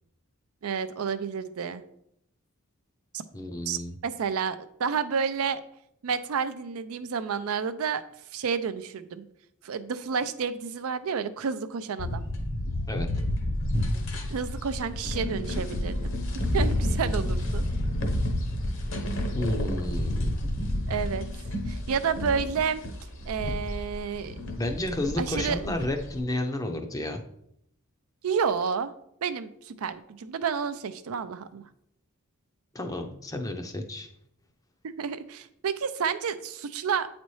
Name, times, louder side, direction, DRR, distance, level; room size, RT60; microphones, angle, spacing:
voice 1, 0.6-1.8 3.1-3.2 3.7-5.6 6.0-8.0 8.3-9.2 9.6-12.2 14.3-16.0 16.5-17.6 20.9-21.3 21.7-22.8 23.3-24.3 25.2-25.6 28.2-28.9 29.2-31.6 35.0-37.1, right 6 dB, 75° right, 12 dB, 0.4 m, -30 dB
voice 2, 3.3-3.9 12.9-13.1 19.3-20.3 24.6-27.2 32.7-34.1, left 1 dB, 15° left, 5 dB, 0.5 m, -31 dB
sound 1, 12.0-26.2, left 1 dB, 55° left, 0.9 m, -31 dB
sound 2, 16.3-20.4, left 1 dB, 55° right, 1.1 m, -31 dB
8.3 x 4.1 x 3.1 m, 0.73 s
head